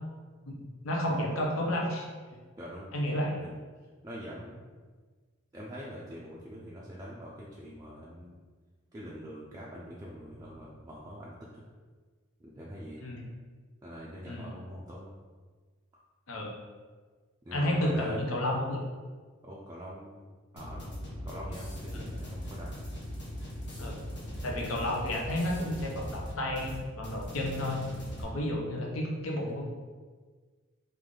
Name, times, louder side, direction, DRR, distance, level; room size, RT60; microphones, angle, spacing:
voice 1, 0.5-2.1 2.9-3.3 13.0-13.2 14.3-14.4 16.3-16.5 17.5-18.8 21.9-22.1 23.8-24.0 24.4-27.8 28.2-29.6, left 1 dB, 75° left, 0 dB, 0.7 m, -31 dB
voice 2, 2.6-3.5 4.0-4.6 5.5-8.4 8.9-11.6 12.4-13.0 13.8-15.1 17.4-18.2 19.4-22.9, equal, 15° right, -6 dB, 0.4 m, -44 dB
sound 1, 20.6-28.2, equal, 55° left, 0.9 m, -40 dB
3.4 x 2.5 x 3.6 m, 1.5 s
head